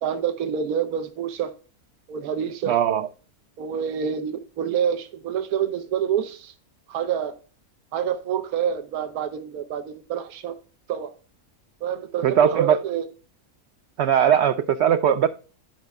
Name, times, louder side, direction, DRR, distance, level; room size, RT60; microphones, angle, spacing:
voice 1, 0.0-1.5 2.1-2.8 3.6-6.5 6.9-7.4 7.9-10.6 10.9-11.1 11.8-13.1, right 8 dB, 85° right, 1.3 m, -27 dB
voice 2, 2.7-3.0 12.2-12.8 14.0-15.3, right 9 dB, 65° right, 0.6 m, -19 dB
10.5 x 5.2 x 3.4 m
omnidirectional pair, 1.5 m